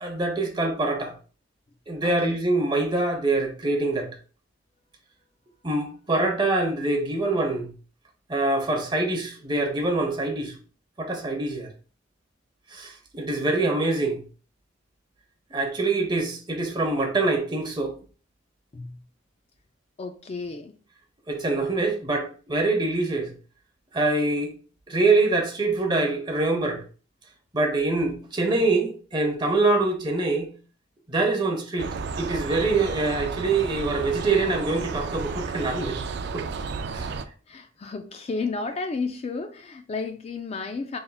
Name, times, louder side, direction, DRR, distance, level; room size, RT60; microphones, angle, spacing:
voice 1, 0.0-1.1 1.9-4.1 5.6-7.7 8.3-10.5 11.0-11.7 12.7-14.2 15.5-17.9 21.3-23.3 23.9-24.5 24.9-26.8 27.5-30.5 31.1-31.9 32.2-36.0 36.3-36.4 36.9-37.1, right 2 dB, 25° right, 0.9 m, -24 dB
voice 2, 2.0-2.4 18.7-19.0 20.0-20.7 37.5-41.0, left 4 dB, 30° left, 0.3 m, -32 dB
sound 1, 31.8-37.3, right 4 dB, 55° right, 0.4 m, -32 dB
5.4 x 3.5 x 2.3 m
head